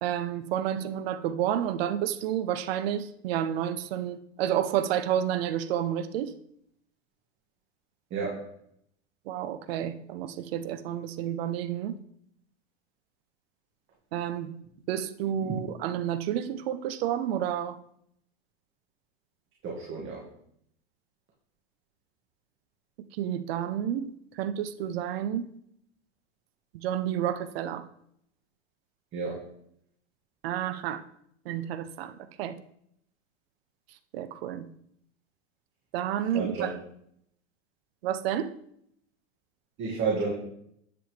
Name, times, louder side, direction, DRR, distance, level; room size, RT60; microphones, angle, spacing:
voice 1, 0.0-6.3 9.3-12.0 14.1-14.5 14.9-17.8 23.2-25.5 26.7-27.9 30.4-31.0 31.5-32.6 34.1-34.7 35.9-36.8 38.0-38.5, right 10 dB, 65° right, 0.7 m, -30 dB
voice 2, 8.1-8.5 15.4-15.6 19.6-20.2 29.1-29.4 36.3-36.7 39.8-40.3, right 5 dB, 35° right, 2.1 m, -31 dB
10.0 x 7.8 x 3.4 m
hypercardioid pair, 110°, 33 cm